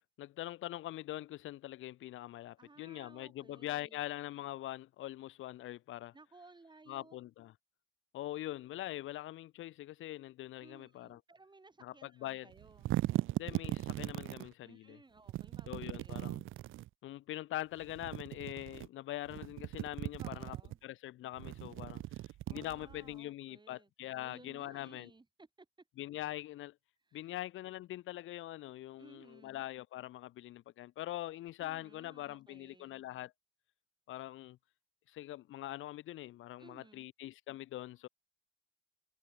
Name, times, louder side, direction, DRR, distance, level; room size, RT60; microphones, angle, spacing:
voice 1, 0.2-6.1 6.9-7.5 8.1-11.2 11.8-12.5 13.4-15.0 15.7-16.4 17.0-20.6 20.8-22.0 22.5-25.1 26.0-26.8 27.1-33.3 34.1-34.6 35.1-38.1, left 14 dB, 85° left, 3.6 m, -43 dB
voice 2, 2.6-4.0 6.1-7.2 10.6-12.9 14.6-16.4 20.2-20.8 22.5-25.7 27.1-27.4 29.0-29.6 31.6-33.0 36.6-37.1, right 3 dB, 20° right, 6.6 m, -59 dB
sound 1, 12.5-14.5 15.3-16.9 17.8-18.9 19.2-20.8 21.3-23.1, right 15 dB, 90° right, 2.5 m, -38 dB
cardioid pair, 90°, 20 cm